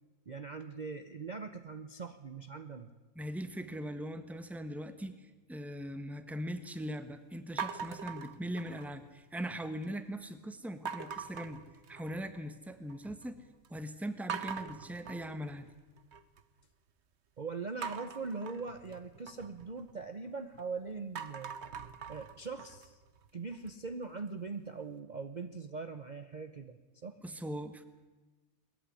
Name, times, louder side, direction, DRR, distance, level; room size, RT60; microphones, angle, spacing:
voice 1, 0.3-2.9 17.4-21.5 22.1-23.0 23.3-27.2, right 4 dB, 35° right, 9 dB, 0.9 m, -41 dB
voice 2, 3.1-11.6 11.9-13.4 13.7-15.7 27.2-27.8, equal, ahead, 10 dB, 1.1 m, -40 dB
sound 1, 7.6-9.1 9.4-10.0 10.9-12.4 12.7-13.3 13.6-13.7 14.3-16.4 17.8-20.6 21.0-23.9, right 6 dB, 55° right, 1.2 m, -43 dB
21.0 x 14.5 x 9.8 m, 1.2 s
omnidirectional pair, 1.5 m